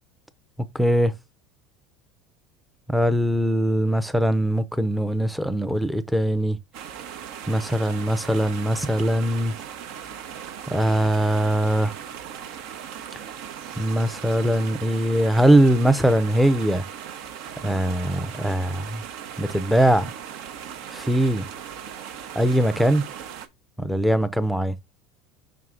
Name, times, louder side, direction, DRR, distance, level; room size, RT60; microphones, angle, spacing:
voice 1, 0.7-1.1 2.9-6.6 7.5-9.5 10.7-12.0 13.8-16.8 17.6-19.0 19.4-20.1 20.9-21.5 22.4-23.1 23.8-24.8, right 1 dB, ahead, 0.5 m, -21 dB
sound 1, 6.7-23.5, right 9 dB, 65° right, 0.9 m, -38 dB
5.6 x 4.7 x 3.7 m
supercardioid pair, 140°, 0 cm